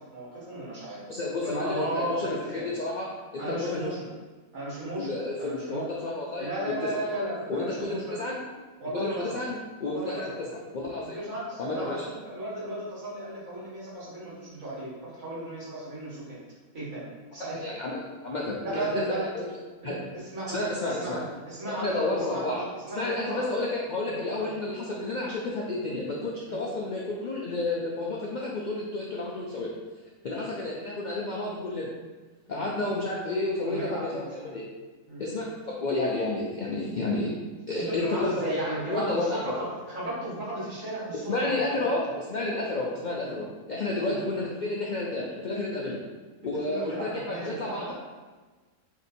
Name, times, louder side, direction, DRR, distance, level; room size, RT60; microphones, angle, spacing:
voice 1, 0.0-1.1 1.4-2.7 3.4-4.1 4.5-5.8 6.4-8.2 8.8-9.4 9.8-10.4 11.0-16.4 16.7-17.1 17.3-17.6 18.6-19.3 19.8-23.4 24.1-24.5 25.8-26.0 26.5-26.6 30.3-30.4 32.5-32.7 33.6-34.6 35.1-35.2 37.7-41.9 44.0-44.2 45.8-45.9 46.6-47.9, right 1 dB, 85° right, -9 dB, 2.0 m, -35 dB
voice 2, 1.1-3.9 4.9-7.0 7.5-8.4 8.9-11.2 11.6-12.0 17.6-19.4 19.8-19.9 20.5-21.2 21.8-22.6 22.9-29.7 30.2-31.9 32.5-34.7 35.2-37.3 37.7-38.6 38.9-39.6 41.3-46.0 46.4-47.9, left 2 dB, 70° left, -4 dB, 0.4 m, -31 dB
3.6 x 2.6 x 4.1 m, 1.3 s
omnidirectional pair, 1.4 m